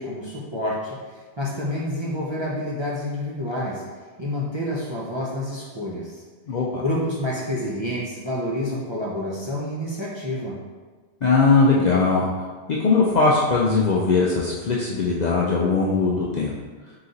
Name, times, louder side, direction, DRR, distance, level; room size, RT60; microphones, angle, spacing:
voice 1, 0.0-3.8 4.2-6.2 6.8-10.6, left 1 dB, 35° right, -6 dB, 0.5 m, -28 dB
voice 2, 6.5-6.8 11.2-12.3 12.7-16.5, left 4 dB, 55° left, -4 dB, 0.5 m, -20 dB
3.8 x 2.9 x 3.8 m, 1.4 s
omnidirectional pair, 1.1 m